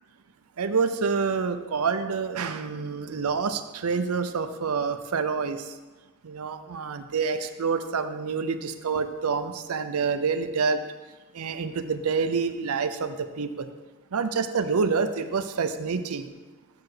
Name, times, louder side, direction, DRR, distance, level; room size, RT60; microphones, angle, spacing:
voice 1, 0.6-5.8 6.2-10.8 11.3-13.7 14.1-16.3, right 5 dB, 85° right, 9 dB, 0.6 m, -27 dB
7.3 x 4.8 x 6.5 m, 1.2 s
head